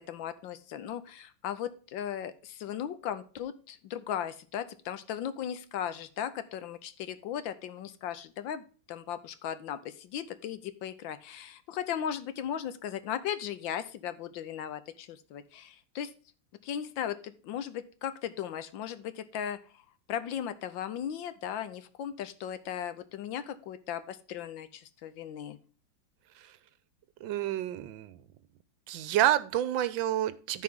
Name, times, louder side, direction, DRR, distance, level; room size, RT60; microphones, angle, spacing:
voice 1, 0.0-16.1 16.6-19.6 20.1-25.6, left 9 dB, 75° left, 12 dB, 1.4 m, -37 dB
voice 2, 27.2-28.2 28.9-30.6, right 12 dB, 75° right, 15 dB, 1.3 m, -29 dB
13.5 x 4.8 x 3.5 m, 0.39 s
omnidirectional pair, 2.2 m